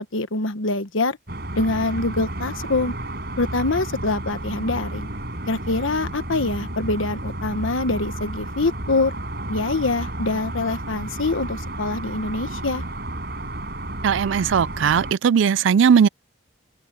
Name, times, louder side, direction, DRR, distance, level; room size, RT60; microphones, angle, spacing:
voice 1, 0.1-1.2 1.6-2.9 3.4-5.1 5.5-9.1 9.5-12.8, left 2 dB, 85° left, 1.2 m, -24 dB
sound 1, 1.3-15.1, right 1 dB, 50° right, 6.6 m, -32 dB
voice 2, 14.0-16.1, right 7 dB, 75° right, 0.4 m, -18 dB
open air
head